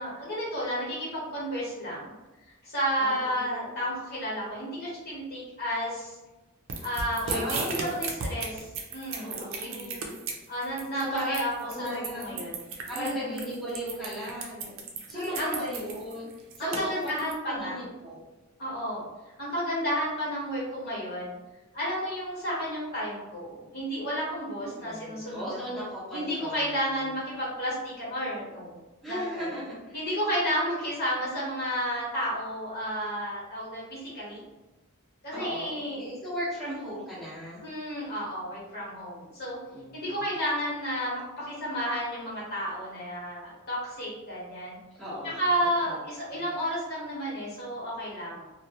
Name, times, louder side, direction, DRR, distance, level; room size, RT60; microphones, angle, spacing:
voice 1, 0.0-2.1 2.6-6.2 6.8-10.0 10.5-12.7 13.0-13.4 15.1-15.6 16.6-17.8 18.6-19.0 19.4-21.3 21.7-25.6 26.1-28.8 29.0-29.5 29.9-34.4 35.2-36.1 37.6-39.6 39.9-44.8 45.2-48.4, equal, 45° left, -7 dB, 1.1 m, -32 dB
voice 2, 3.0-4.0 7.2-8.0 9.2-10.2 11.0-11.4 11.7-12.4 12.9-17.1 17.5-18.2 24.6-26.9 29.0-29.9 35.3-35.7 35.9-37.6 39.7-40.2 45.0-45.4 45.8-46.0 46.3-46.5, equal, ahead, -11 dB, 0.7 m, -37 dB
sound 1, 6.7-17.3, right 4 dB, 65° right, 0.4 m, -35 dB
2.5 x 2.1 x 2.8 m, 1.1 s
head